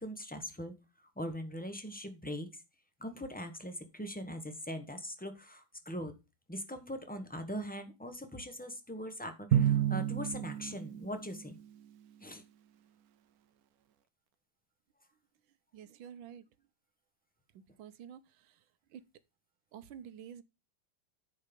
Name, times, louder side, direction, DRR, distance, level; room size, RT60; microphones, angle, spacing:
voice 1, 0.0-2.6 3.0-6.1 6.5-11.6 12.2-12.4, equal, 10° left, 0.6 m, -41 dB
Drum, 9.5-11.7, right 10 dB, 65° right, 1.0 m, -30 dB
voice 2, 15.7-16.4 17.8-18.5 18.9-19.0 19.7-20.4, right 9 dB, 90° right, 1.5 m, -49 dB
9.9 x 4.6 x 5.2 m
omnidirectional pair, 2.1 m